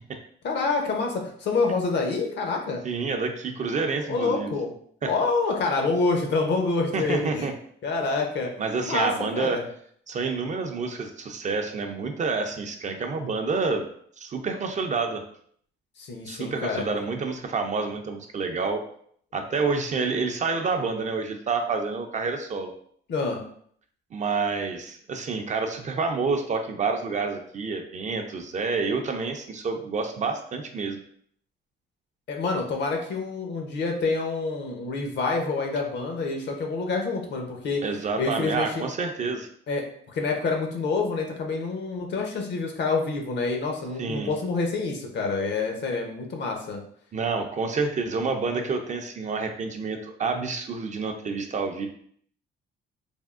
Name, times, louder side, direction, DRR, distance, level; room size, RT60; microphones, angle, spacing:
voice 1, 0.4-2.8 4.1-4.7 5.1-7.5 7.8-8.5 8.8-9.6 16.0-16.8 23.1-23.4 32.3-37.8 38.2-38.8 39.7-46.8, left 3 dB, 60° left, 2 dB, 0.7 m, -27 dB
voice 2, 2.8-4.5 5.0-5.1 6.9-7.5 8.6-9.6 10.1-13.9 14.2-15.2 16.3-18.8 19.3-22.7 24.1-31.0 37.8-39.5 44.0-44.3 47.1-51.9, right 4 dB, 40° right, 4 dB, 0.4 m, -28 dB
3.4 x 2.0 x 2.4 m, 0.63 s
cardioid pair, 90°, 20 cm